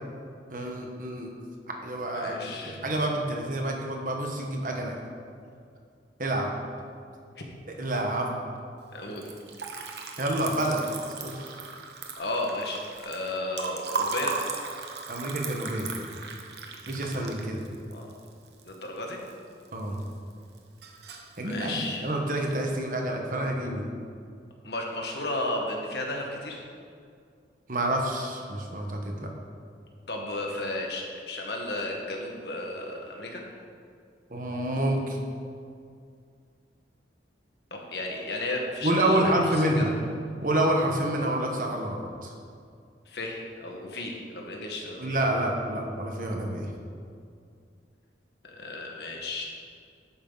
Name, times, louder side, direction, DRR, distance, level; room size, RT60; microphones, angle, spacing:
voice 1, 0.5-1.3 1.8-4.9 6.2-6.5 7.8-8.4 10.2-10.8 11.2-11.6 15.1-15.9 16.9-17.7 19.7-20.0 21.4-23.9 27.7-29.3 34.3-35.2 38.8-39.9 40.4-42.3 45.0-46.7, right 1 dB, 50° right, 1 dB, 1.4 m, -28 dB
voice 2, 2.1-2.8 8.9-9.3 12.2-14.4 17.9-18.1 18.6-19.2 21.4-22.1 24.6-26.6 30.1-33.4 37.7-39.9 43.0-45.1 48.5-49.4, left 2 dB, 70° left, 0 dB, 1.7 m, -33 dB
Liquid, 9.1-19.3 19.6-20.3 20.6-21.4, right 4 dB, 75° right, 1.1 m, -37 dB
12.0 x 8.7 x 4.0 m, 2.3 s
head